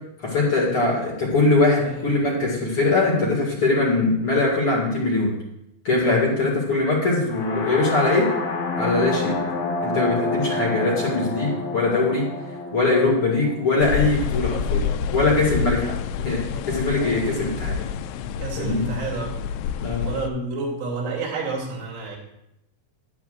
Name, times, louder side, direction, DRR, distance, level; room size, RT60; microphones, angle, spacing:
voice 1, 0.2-5.3 5.8-8.3 8.8-9.3 9.8-12.3 12.7-15.9 16.2-17.8 18.6-18.9 19.8-20.0, left 3 dB, 50° left, -4 dB, 1.7 m, -21 dB
sound 1, 7.3-15.2, left 3 dB, 65° left, 2.4 m, -29 dB
sound 2, 13.8-20.3, left 6 dB, 85° left, 2.6 m, -28 dB
voice 2, 18.4-19.3 20.0-22.2, right 3 dB, 80° right, -4 dB, 5.2 m, -30 dB
16.5 x 9.4 x 2.5 m, 0.81 s
omnidirectional pair, 5.5 m